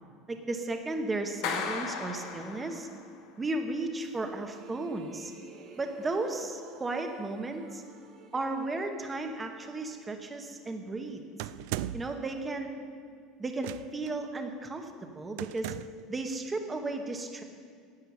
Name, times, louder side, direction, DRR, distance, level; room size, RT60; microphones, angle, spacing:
voice 1, 0.3-2.9 3.4-5.3 5.8-7.8 8.3-11.2 11.9-12.7 13.4-15.7 16.1-17.4, right 2 dB, 15° right, 5 dB, 1.1 m, -34 dB
Clapping, 1.4-3.1, left 6 dB, 70° left, 1.3 m, -35 dB
sound 1, 1.6-3.4 4.1-10.2, right 5 dB, 45° right, 1.3 m, -54 dB
sound 2, 11.4-12.2 13.6-14.1 15.4-16.1, right 14 dB, 80° right, 0.3 m, -37 dB
11.0 x 7.8 x 8.6 m, 2.1 s
cardioid pair, 145°, 0 cm